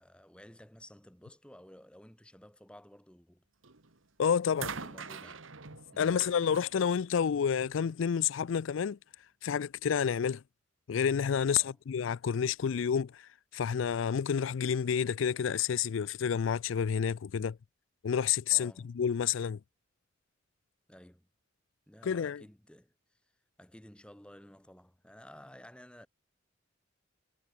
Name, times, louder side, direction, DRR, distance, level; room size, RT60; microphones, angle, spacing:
voice 1, 0.0-3.4 4.6-5.5 5.9-6.4 11.5-11.8 18.5-18.9 20.9-21.3 21.9-22.9 23.6-26.1, equal, 5° left, 1.7 m, -54 dB
sound 1, 3.6-4.0 4.6-7.8 8.9-9.0, right 5 dB, 85° right, 2.0 m, -44 dB
voice 2, 4.2-4.7 6.0-9.0 9.4-10.4 10.9-17.6 18.0-19.6 22.0-22.4, left 7 dB, 75° left, 0.4 m, -29 dB
head